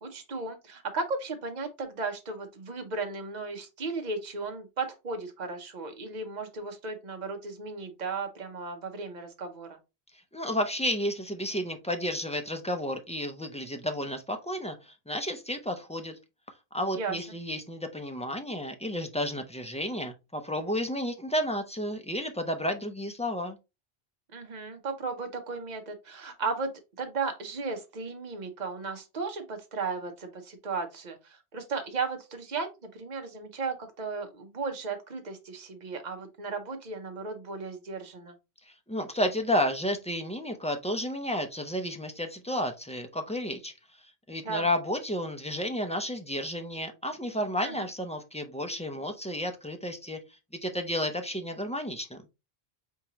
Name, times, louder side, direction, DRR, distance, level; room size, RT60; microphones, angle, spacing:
voice 1, 0.0-9.8 16.9-17.2 24.3-26.7 27.0-38.3 44.4-44.7 47.6-47.9, right 4 dB, 45° right, 0.9 m, -35 dB
voice 2, 10.3-16.2 16.7-23.6 38.9-43.7 44.3-50.2 50.6-52.2, equal, 10° left, 0.3 m, -32 dB
4.4 x 3.7 x 2.9 m
omnidirectional pair, 1.1 m